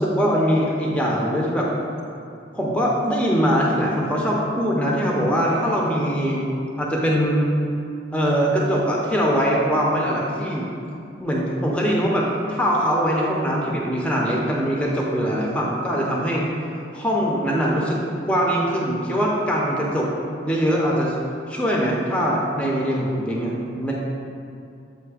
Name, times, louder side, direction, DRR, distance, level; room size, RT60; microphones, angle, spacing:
voice 1, 0.0-1.7 2.5-6.5 6.8-7.5 8.1-10.7 11.2-16.5 16.9-18.0 18.3-20.1 20.4-21.1 21.5-23.9, equal, 5° left, -3 dB, 0.6 m, -22 dB
7.7 x 2.6 x 4.8 m, 2.5 s
head